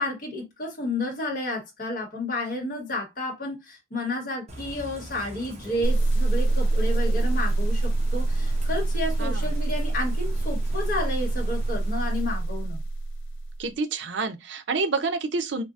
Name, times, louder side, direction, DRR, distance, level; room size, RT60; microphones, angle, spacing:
voice 1, 0.0-12.8, left 1 dB, 45° left, 1.2 m, -31 dB
Bird / Rain, 4.5-12.6, equal, 35° right, 0.8 m, -42 dB
sound 1, 5.8-13.6, right 2 dB, 85° left, 0.3 m, -25 dB
voice 2, 13.6-15.6, right 4 dB, 70° right, 0.5 m, -28 dB
3.8 x 2.4 x 2.4 m
head